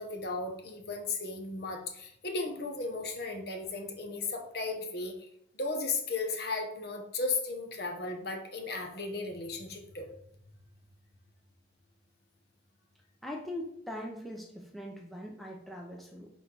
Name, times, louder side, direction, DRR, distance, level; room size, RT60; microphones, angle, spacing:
voice 1, 0.0-5.3 5.5-10.1, left 3 dB, 55° left, 3 dB, 1.0 m, -35 dB
voice 2, 13.2-16.3, left 1 dB, ahead, 0 dB, 0.6 m, -41 dB
4.8 x 4.1 x 5.3 m, 0.74 s
head